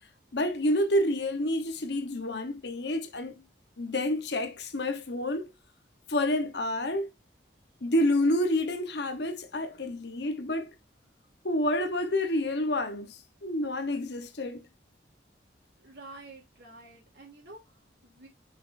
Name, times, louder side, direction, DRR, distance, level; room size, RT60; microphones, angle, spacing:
voice 1, 0.3-3.4 3.8-5.5 6.1-7.1 7.8-10.7 11.4-14.7, left 1 dB, 65° left, 1.1 m, -29 dB
voice 2, 15.8-18.3, right 2 dB, 60° right, 3.2 m, -49 dB
6.4 x 6.1 x 2.6 m
head